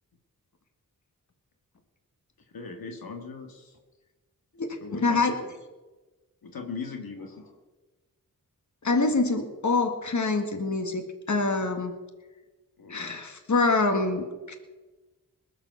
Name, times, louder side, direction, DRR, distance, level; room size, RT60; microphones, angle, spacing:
voice 1, 2.4-3.8 4.8-5.5 6.4-7.6 12.8-13.2, left 4 dB, 80° left, 3 dB, 1.8 m, -39 dB
voice 2, 4.6-5.4 8.8-12.0 12.9-14.6, left 3 dB, 55° left, 6 dB, 1.9 m, -26 dB
19.5 x 7.3 x 6.8 m, 1.2 s
cardioid pair, 45°, 35 cm